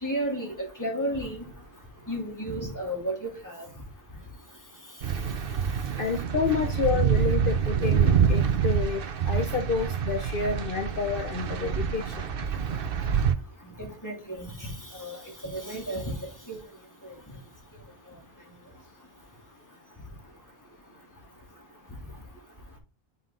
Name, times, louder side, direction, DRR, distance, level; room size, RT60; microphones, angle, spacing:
voice 1, 0.0-1.4 2.1-3.7 13.8-15.2 15.4-16.2 16.5-16.6 17.0-17.2, right 1 dB, 15° left, 0 dB, 2.9 m, -33 dB
sound 1, 5.0-13.3, right 7 dB, 65° right, 0.9 m, -26 dB
voice 2, 6.0-9.0 9.3-12.1, left 5 dB, 60° left, 4 dB, 1.0 m, -29 dB
7.5 x 5.4 x 3.8 m, 0.30 s
omnidirectional pair, 1.0 m